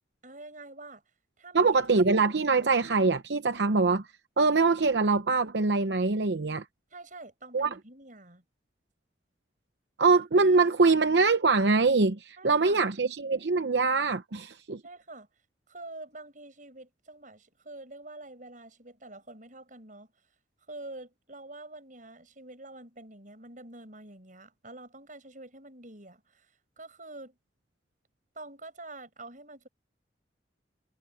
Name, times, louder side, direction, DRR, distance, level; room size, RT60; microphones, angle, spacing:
voice 1, 0.2-1.0 1.4-1.8 6.9-8.4 12.4-12.8 14.8-15.3 15.7-20.1 20.7-26.5 26.8-27.4 28.3-29.7, right 2 dB, 45° right, 7.9 m, -46 dB
voice 2, 1.5-4.1 4.4-6.6 7.5-7.7 10.0-14.8, right 4 dB, 75° right, 0.8 m, -23 dB
head